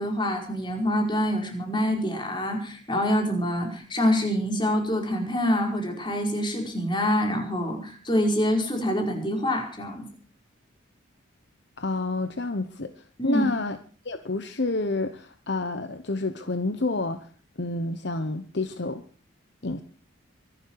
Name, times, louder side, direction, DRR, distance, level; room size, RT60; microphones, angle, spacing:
voice 1, 0.0-10.1 13.2-13.4, equal, 25° left, 2 dB, 4.8 m, -26 dB
voice 2, 11.8-13.8 14.0-17.3 17.6-19.0 19.6-19.8, left 2 dB, 55° left, 9 dB, 1.0 m, -29 dB
24.0 x 12.0 x 4.8 m, 0.41 s
head